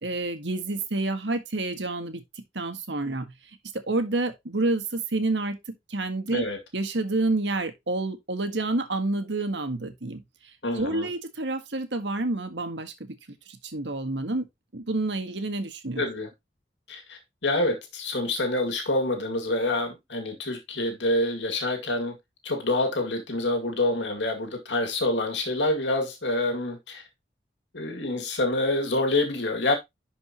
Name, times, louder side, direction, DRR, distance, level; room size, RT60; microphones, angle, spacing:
voice 1, 0.0-2.2 2.5-3.3 3.9-5.6 5.9-6.4 6.7-10.2 10.7-13.1 13.5-14.4 14.7-16.0, right 2 dB, 75° right, 1.7 m, -28 dB
voice 2, 10.6-11.1 16.0-16.3 16.9-22.2 22.4-27.0 27.7-29.7, left 2 dB, 80° left, 2.2 m, -27 dB
11.0 x 5.2 x 2.9 m
head